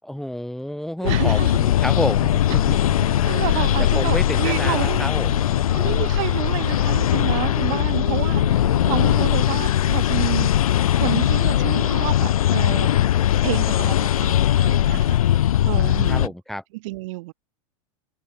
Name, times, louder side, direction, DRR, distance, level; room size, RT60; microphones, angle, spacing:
voice 1, 0.0-5.4 15.8-16.6, left 1 dB, ahead, 6.4 m, -30 dB
sound 1, 1.0-16.3, left 11 dB, 90° left, 1.5 m, -20 dB
voice 2, 1.0-1.5 3.3-5.1 5.7-10.5 10.9-13.0 13.4-15.2 15.7-16.3 16.8-17.3, right 21 dB, 65° right, 5.5 m, -29 dB
sound 2, 2.5-9.3, right 22 dB, 50° right, 7.3 m, -38 dB
supercardioid pair, 120°, 18 cm